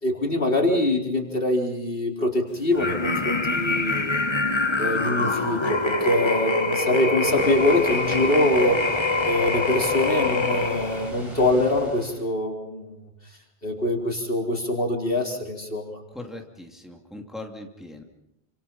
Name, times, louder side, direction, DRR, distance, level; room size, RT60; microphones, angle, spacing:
voice 1, 0.0-4.2 4.8-8.8 9.2-12.9 13.6-16.0, left 1 dB, 55° left, 1 dB, 4.4 m, -24 dB
sound 1, 2.7-11.1, left 3 dB, 25° left, 1.2 m, -24 dB
Water, 7.3-12.3, equal, 25° right, 5.9 m, -39 dB
voice 2, 16.1-18.0, left 2 dB, ahead, 2 dB, 2.7 m, -39 dB
28.5 x 27.0 x 5.6 m, 0.84 s
omnidirectional pair, 1.1 m